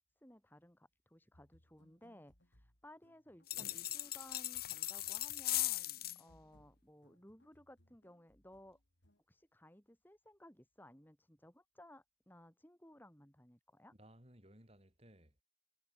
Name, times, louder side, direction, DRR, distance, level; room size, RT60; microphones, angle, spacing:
voice 1, 0.2-8.8 9.3-13.9, left 1 dB, 10° left, 4.3 m, -60 dB
sound 1, 1.3-9.2, equal, 80° left, 5.9 m, -71 dB
sound 2, 3.5-6.2, left 15 dB, 55° left, 1.1 m, -38 dB
voice 2, 13.9-15.4, right 1 dB, 35° right, 5.9 m, -61 dB
head